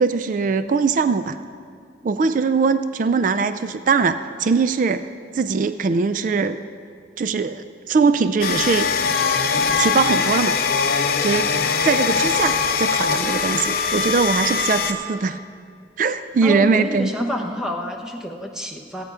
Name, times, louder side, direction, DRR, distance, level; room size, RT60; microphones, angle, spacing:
voice 1, 0.0-1.4 2.0-5.1 5.3-6.6 7.2-8.9 9.8-10.6 11.2-11.5 11.8-15.4 16.0-17.1, right 4 dB, 45° right, 12 dB, 0.3 m, -21 dB
sound 1, 8.4-14.9, left 5 dB, 50° left, 0.7 m, -21 dB
voice 2, 16.4-19.0, equal, 5° right, 2 dB, 0.9 m, -28 dB
16.0 x 9.1 x 4.9 m, 2.3 s
head